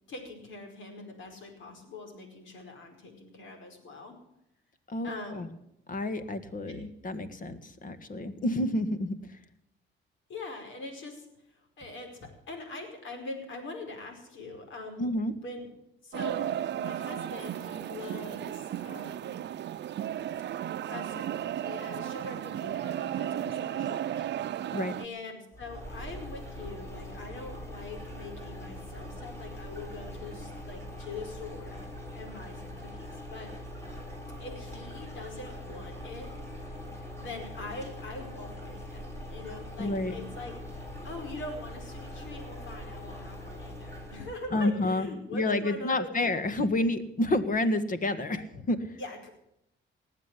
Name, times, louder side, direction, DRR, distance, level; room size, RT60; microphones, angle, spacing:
voice 1, 0.1-4.2 5.0-5.5 10.3-15.7 16.0-19.4 20.9-24.3 25.0-31.8 32.1-33.5 34.4-36.3 37.2-40.5 41.0-46.4 49.0-49.3, left 2 dB, 75° left, 4 dB, 4.9 m, -43 dB
voice 2, 4.9-5.5 5.9-9.4 15.0-15.3 24.7-24.9 39.8-40.1 44.5-45.1 45.3-49.0, left 1 dB, 45° left, 11 dB, 1.8 m, -29 dB
sound 1, 16.1-25.1, right 11 dB, 60° right, 0.7 m, -34 dB
sound 2, 25.5-44.4, left 1 dB, 15° left, 6.8 m, -42 dB
19.0 x 7.6 x 9.8 m, 0.81 s
cardioid pair, 90°, 20 cm